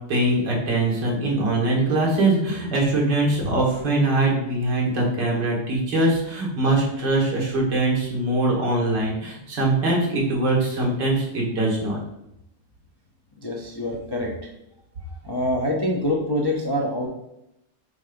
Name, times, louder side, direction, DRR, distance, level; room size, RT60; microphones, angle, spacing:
voice 1, 0.1-12.0, right 2 dB, 85° right, -2 dB, 2.5 m, -22 dB
voice 2, 13.4-14.5 15.2-17.1, left 1 dB, 40° left, -1 dB, 0.3 m, -25 dB
5.4 x 3.9 x 5.3 m, 0.84 s
omnidirectional pair, 1.9 m